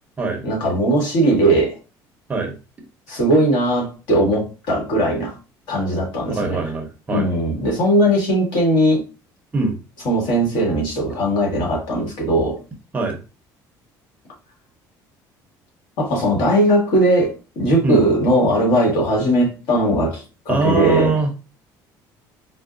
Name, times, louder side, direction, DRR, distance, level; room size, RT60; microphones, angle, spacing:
voice 1, 0.4-1.7 3.1-5.3 5.7-6.6 7.1-9.0 10.0-12.6 16.0-21.2, right 1 dB, 70° left, 1.5 m, -19 dB
voice 2, 6.3-7.3 9.5-9.8 12.9-13.2 17.8-18.0 20.5-21.3, right 3 dB, 20° right, 0.6 m, -22 dB
4.5 x 2.1 x 2.4 m
cardioid pair, 170°, 8 cm